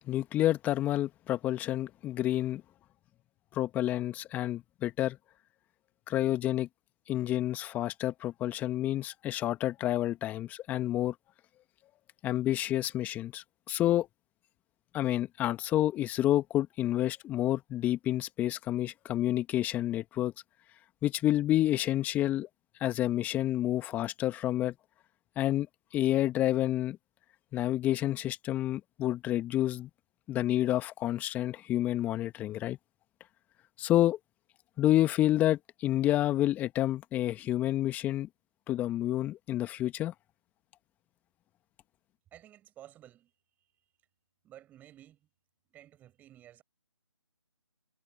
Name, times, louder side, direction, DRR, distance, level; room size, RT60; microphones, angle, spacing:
voice 1, 0.1-2.6 3.5-5.2 6.1-6.7 7.1-11.1 12.2-14.1 14.9-20.3 21.0-22.5 22.8-24.7 25.4-25.7 25.9-27.0 27.5-29.9 30.3-32.8 33.8-34.2 34.8-38.3 38.7-40.1, left 13 dB, 10° left, 1.9 m, -29 dB
voice 2, 42.3-43.3 44.4-45.3 45.7-46.6, right 12 dB, 10° right, 6.3 m, -54 dB
figure-of-eight pair, 150°, 15 cm